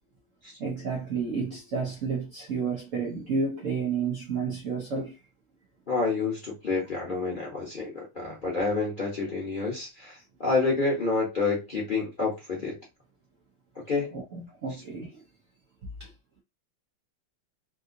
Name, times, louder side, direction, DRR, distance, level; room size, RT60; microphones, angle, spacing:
voice 1, 0.6-5.1 14.1-15.1 16.0-16.1, right 5 dB, 90° right, 0.6 m, -31 dB
voice 2, 5.9-12.8 13.9-14.1, left 3 dB, 40° left, 0.8 m, -28 dB
3.6 x 2.6 x 2.6 m
omnidirectional pair, 2.3 m